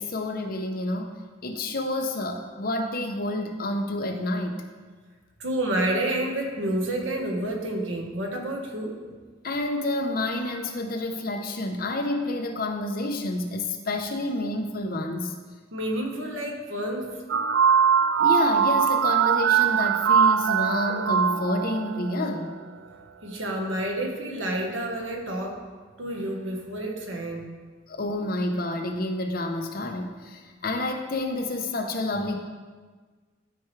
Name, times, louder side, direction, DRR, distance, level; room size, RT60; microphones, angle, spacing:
voice 1, 0.0-4.6 9.4-15.3 18.2-22.5 27.9-32.4, left 2 dB, 50° left, 4 dB, 0.8 m, -29 dB
voice 2, 5.4-9.0 15.7-17.1 23.2-25.6 26.0-27.5, right 1 dB, 90° right, 1 dB, 1.4 m, -29 dB
sound 1, 17.3-22.4, right 7 dB, 70° right, 0.4 m, -21 dB
13.0 x 4.7 x 3.3 m, 1.4 s
head